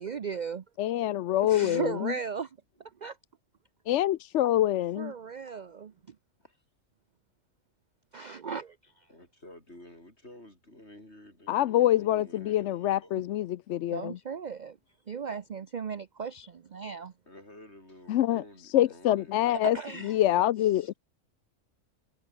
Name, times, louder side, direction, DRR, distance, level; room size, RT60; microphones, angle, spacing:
voice 1, 0.0-0.6 1.4-3.2 5.0-6.2 8.1-9.1 13.9-14.8 15.1-17.1 19.5-20.2 20.8-20.9, right 6 dB, 45° right, 0.6 m, -37 dB
voice 2, 0.8-2.1 3.9-5.1 11.5-14.2 18.1-18.4 18.7-19.8 20.0-20.9, left 13 dB, 65° left, 0.8 m, -25 dB
voice 3, 9.1-13.3 17.3-21.0, left 1 dB, 50° left, 8.5 m, -52 dB
omnidirectional pair, 1.4 m